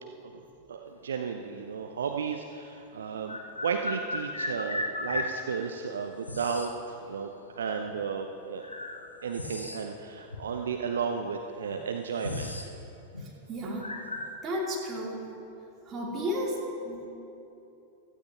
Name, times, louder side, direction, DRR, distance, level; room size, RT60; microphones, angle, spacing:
voice 1, 0.7-8.7 9.2-12.5, right 6 dB, 65° right, 5 dB, 0.6 m, -33 dB
sound 1, 2.0-2.1 3.2-5.4 6.2-6.8 7.9-8.0 8.6-10.0 10.3-10.4 11.2-11.3 11.6-12.7 13.0-13.3 13.8-14.3, left 2 dB, 80° left, 1.0 m, -35 dB
voice 2, 13.2-13.9 14.4-15.3 15.9-17.1, equal, 25° right, -4 dB, 3.1 m, -33 dB
16.0 x 14.5 x 2.9 m, 2.8 s
figure-of-eight pair, 90°, 0 cm